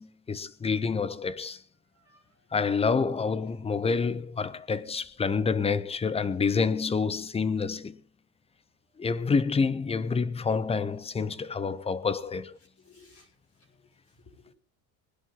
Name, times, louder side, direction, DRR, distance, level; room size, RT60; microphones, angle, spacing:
voice 1, 0.0-1.6 2.5-8.0 9.0-12.6, left 5 dB, 15° left, 0.6 m, -28 dB
voice 2, 1.9-2.5 12.8-13.3 13.6-14.6, left 3 dB, 30° left, 6.0 m, -59 dB
20.0 x 11.0 x 3.7 m
supercardioid pair, 125°, 44 cm